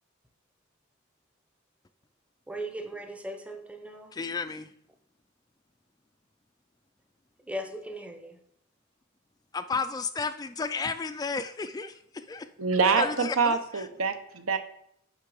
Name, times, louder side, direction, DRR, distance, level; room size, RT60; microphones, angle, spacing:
voice 1, 2.5-4.1 7.4-8.4, right 1 dB, 5° right, 6 dB, 0.7 m, -38 dB
voice 2, 4.2-4.7 9.5-11.9 12.3-12.5 13.0-13.5, left 4 dB, 20° left, 11 dB, 0.3 m, -32 dB
voice 3, 12.6-14.6, right 5 dB, 75° right, 8 dB, 0.8 m, -25 dB
6.5 x 5.8 x 4.9 m, 0.69 s
head